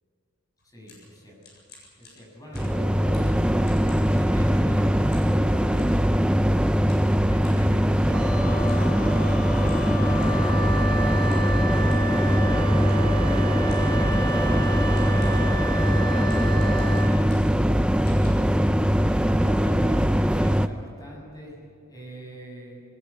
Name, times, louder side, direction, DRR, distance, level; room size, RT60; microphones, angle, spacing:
sound 1, 0.6-4.8 5.1-6.0 6.9-7.7 8.6-8.9 9.2-9.3 9.6-10.5 11.3-11.6 11.9-12.1 12.9-13.2 13.7-14.0 14.6-14.7 14.9-15.5 16.2-17.7 18.0-18.3, left 3 dB, 50° left, 7.8 m, -52 dB
voice 1, 0.6-1.4 2.0-6.3 7.0-8.5 9.8-10.7 19.2-22.8, equal, 15° left, -1 dB, 6.3 m, -43 dB
sound 2, 2.5-20.7, equal, 5° right, 0.5 m, -21 dB
Wind instrument woodwind instrument, 8.1-17.2, right 1 dB, 45° right, 2.7 m, -32 dB
20.5 x 20.5 x 8.2 m, 2.4 s
head